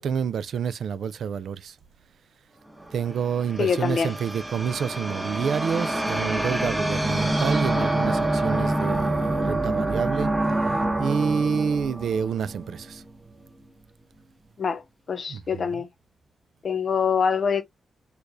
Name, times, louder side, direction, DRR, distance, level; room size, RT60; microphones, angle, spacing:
voice 1, 0.0-1.8 2.9-10.3 11.0-13.0 15.3-15.8, right 7 dB, 80° right, 0.4 m, -28 dB
sound 1, 2.8-13.1, right 1 dB, 10° right, 0.8 m, -27 dB
voice 2, 3.6-4.1 14.6-14.8 15.1-15.9 16.6-17.6, left 6 dB, 55° left, 0.7 m, -24 dB
6.4 x 2.3 x 2.6 m
cardioid pair, 100°, 0 cm